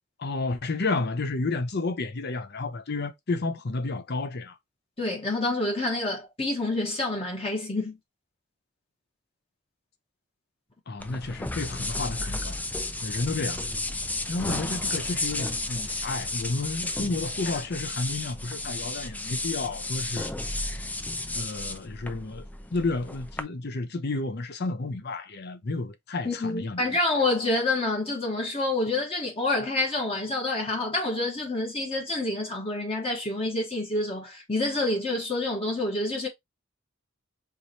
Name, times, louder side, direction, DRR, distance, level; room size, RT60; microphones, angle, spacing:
voice 1, 0.2-4.6 10.9-12.6 13.0-13.7 14.3-20.3 21.3-22.4 22.7-26.8, left 3 dB, 50° left, 0.7 m, -31 dB
voice 2, 5.0-8.0 26.2-36.3, left 2 dB, 30° left, 1.1 m, -28 dB
sound 1, 11.0-23.4, left 2 dB, 10° left, 0.4 m, -33 dB
4.7 x 3.1 x 2.7 m
head